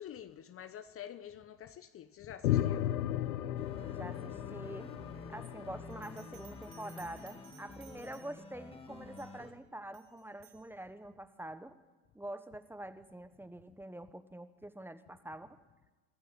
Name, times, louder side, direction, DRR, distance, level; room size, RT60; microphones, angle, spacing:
voice 1, 0.0-3.0, left 10 dB, 30° left, 0.9 m, -47 dB
sound 1, 2.4-7.1, left 12 dB, 80° left, 1.0 m, -35 dB
sound 2, 3.6-9.5, left 2 dB, 15° left, 2.1 m, -50 dB
voice 2, 3.9-5.0 5.3-11.8 12.1-15.6, right 1 dB, 5° right, 1.2 m, -46 dB
Bell, 5.9-8.6 9.2-9.5 9.9-10.7, right 11 dB, 50° right, 5.2 m, -60 dB
25.5 x 13.5 x 8.5 m
hypercardioid pair, 100°, 43 cm